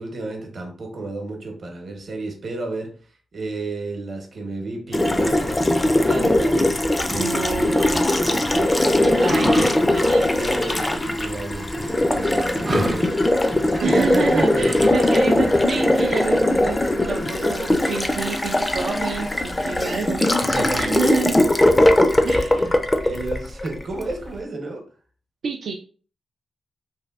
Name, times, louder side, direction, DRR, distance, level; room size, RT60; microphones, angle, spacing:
voice 1, 0.0-2.9 3.3-7.9 8.5-9.2 10.4-13.2 13.7-14.7 20.4-21.0 22.4-24.8, right 2 dB, 55° right, 2 dB, 0.9 m, -32 dB
Water tap faucet, 4.9-24.1, left 1 dB, 20° left, 0.4 m, -20 dB
sound 1, 6.9-21.4, right 1 dB, 35° right, 0.6 m, -36 dB
voice 2, 7.2-8.4 9.0-10.4 13.8-21.8 22.2-22.8 25.4-25.7, right 4 dB, 75° right, 1 dB, 0.4 m, -28 dB
3.2 x 2.6 x 2.4 m, 0.41 s
cardioid pair, 95°, 0 cm